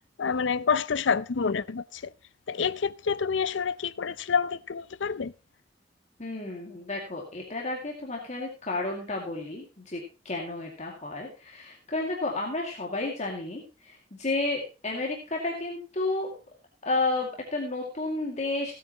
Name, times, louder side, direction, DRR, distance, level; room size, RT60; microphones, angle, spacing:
voice 1, 0.0-2.1 2.5-5.3, left 6 dB, 80° left, 0.6 m, -28 dB
voice 2, 6.2-16.3 16.8-18.7, left 2 dB, 40° left, 2.3 m, -32 dB
16.0 x 9.3 x 2.9 m
head